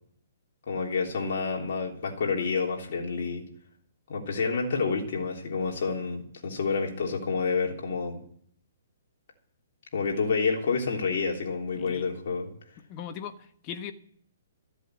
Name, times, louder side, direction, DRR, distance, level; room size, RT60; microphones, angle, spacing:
voice 1, 0.7-3.4 4.1-8.2 9.9-12.5, left 5 dB, 60° left, 0 dB, 3.4 m, -29 dB
voice 2, 11.7-12.1 12.9-13.9, left 9 dB, 30° left, 8 dB, 1.2 m, -39 dB
14.0 x 8.3 x 8.3 m, 0.62 s
hypercardioid pair, 150°, 0 cm